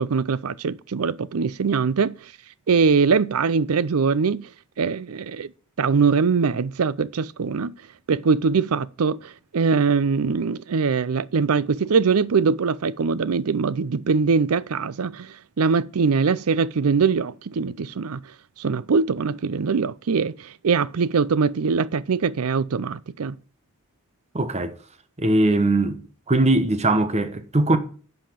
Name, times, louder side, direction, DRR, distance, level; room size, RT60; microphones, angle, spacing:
voice 1, 0.0-2.2 2.7-4.5 4.8-5.5 5.8-7.7 8.1-18.2 18.6-23.4, right 5 dB, 75° right, 0.5 m, -22 dB
voice 2, 24.3-24.8 25.2-26.0 26.3-27.8, right 2 dB, 30° right, 1.0 m, -20 dB
10.5 x 5.7 x 5.7 m
head